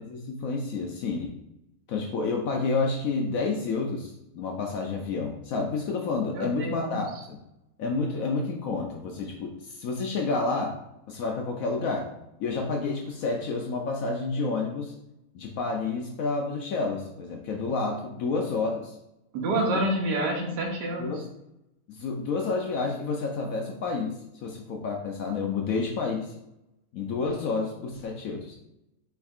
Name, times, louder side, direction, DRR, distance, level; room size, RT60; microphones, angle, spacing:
voice 1, 0.0-1.3 1.9-7.4 7.8-10.8 11.1-12.1 12.4-14.9 15.3-19.0 19.7-19.8 21.0-21.3 21.9-26.3 26.9-28.6, left 4 dB, 70° left, 1 dB, 0.8 m, -29 dB
voice 2, 6.3-7.0 19.3-21.2, right 1 dB, 85° right, 1 dB, 1.5 m, -28 dB
4.3 x 3.5 x 2.3 m, 0.88 s
omnidirectional pair, 1.8 m